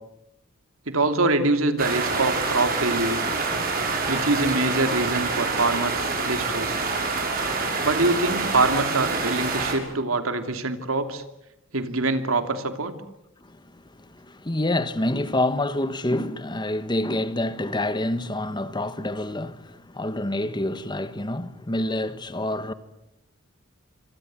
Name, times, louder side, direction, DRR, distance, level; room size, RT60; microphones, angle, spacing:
voice 1, 0.9-3.2 4.1-6.8 7.8-11.2 11.7-12.9, right 2 dB, 85° right, 2.8 m, -24 dB
sound 1, 1.8-9.7, right 3 dB, 45° right, 6.7 m, -26 dB
voice 2, 13.4-22.7, left 1 dB, 20° left, 1.3 m, -27 dB
27.5 x 26.0 x 7.7 m
head